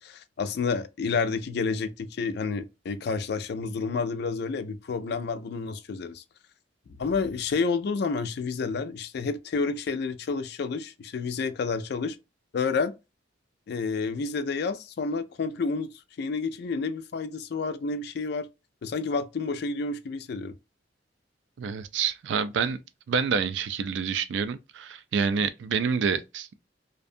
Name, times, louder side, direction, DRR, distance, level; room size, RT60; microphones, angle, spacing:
voice 1, 0.0-6.2 7.0-12.2 12.5-12.9 13.7-15.9 16.2-18.5 18.8-20.6, left 4 dB, 65° left, 0.4 m, -29 dB
voice 2, 21.6-22.8 23.1-26.6, right 6 dB, 75° right, 0.3 m, -27 dB
2.6 x 2.2 x 2.5 m
head